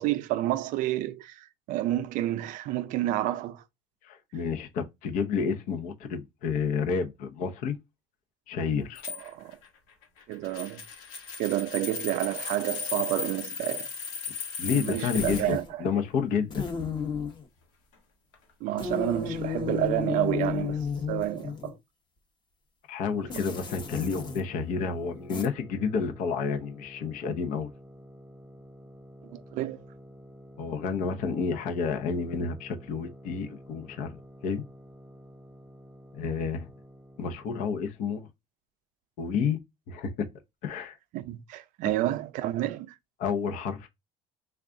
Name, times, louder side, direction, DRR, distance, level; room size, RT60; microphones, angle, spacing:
voice 1, 0.0-3.6 9.1-9.6 10.3-10.8 11.4-13.9 14.7-15.9 18.6-20.8 21.1-21.7 29.3-29.8 41.1-42.9, right 14 dB, 70° right, 0.5 m, -30 dB
voice 2, 4.0-7.8 8.5-9.0 14.6-16.7 22.9-27.7 30.6-34.1 34.4-34.6 36.1-36.7 37.2-38.3 39.2-39.6 39.9-40.3 40.6-40.9 43.2-43.9, left 6 dB, 70° left, 0.8 m, -30 dB
sound 1, 9.0-15.4 16.7-17.3 18.3-18.5, left 5 dB, 90° left, 1.2 m, -36 dB
sound 2, 15.1-15.7 16.5-17.4 18.8-21.8 23.3-24.4 25.3-25.5, left 6 dB, 30° left, 0.9 m, -33 dB
sound 3, 23.0-37.6, equal, 5° left, 0.9 m, -50 dB
3.5 x 2.4 x 3.7 m
cardioid pair, 125°, 14 cm